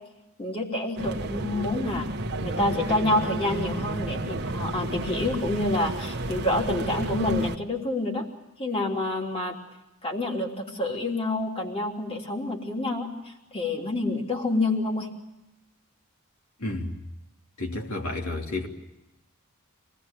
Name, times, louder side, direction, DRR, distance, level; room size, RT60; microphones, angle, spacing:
voice 1, 0.4-2.1 2.4-8.2 8.6-9.6 10.0-13.1 13.5-15.1, left 2 dB, 25° left, 3.3 m, -28 dB
sound 1, 1.0-7.6, right 2 dB, 50° right, 1.2 m, -32 dB
voice 2, 16.6-16.9 17.6-18.7, left 2 dB, 70° left, 3.2 m, -31 dB
26.0 x 19.0 x 8.9 m
head